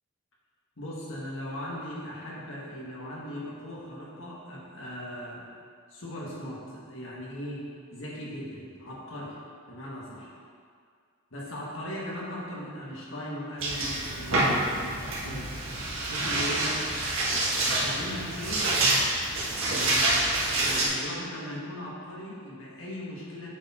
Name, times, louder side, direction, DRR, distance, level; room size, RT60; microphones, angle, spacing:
voice 1, 0.8-5.4 5.9-7.6 7.9-9.4 9.7-10.3 11.3-15.6 16.1-16.8 17.2-18.7 19.6-20.2 20.6-23.5, equal, 65° left, -5 dB, 1.7 m, -38 dB
sound 1, 13.6-20.9, right 2 dB, 75° right, 1.6 m, -27 dB
8.1 x 4.5 x 4.3 m, 2.1 s
head